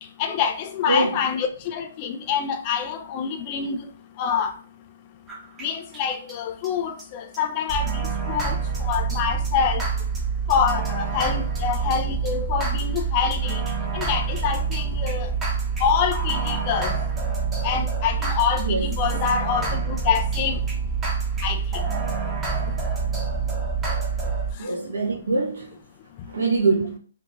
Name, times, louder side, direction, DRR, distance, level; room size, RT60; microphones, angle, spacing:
voice 1, 0.0-4.6 5.6-10.1 10.5-13.6 13.9-15.4 15.8-17.1 17.6-20.7 21.4-21.9 22.7-22.8 24.5-24.7 26.2-26.4, left 7 dB, 35° left, 0.4 m, -26 dB
voice 2, 0.9-1.2 18.6-18.9 24.6-25.8 26.3-27.0, right 3 dB, 75° right, 0.8 m, -24 dB
sound 1, 5.3-5.7 5.9-6.0 6.3-6.4 6.6-6.7 7.0-7.1 7.3-7.4 7.7-24.5, right 5 dB, 15° right, 0.8 m, -26 dB
3.4 x 2.4 x 3.0 m
hypercardioid pair, 140°, 0 cm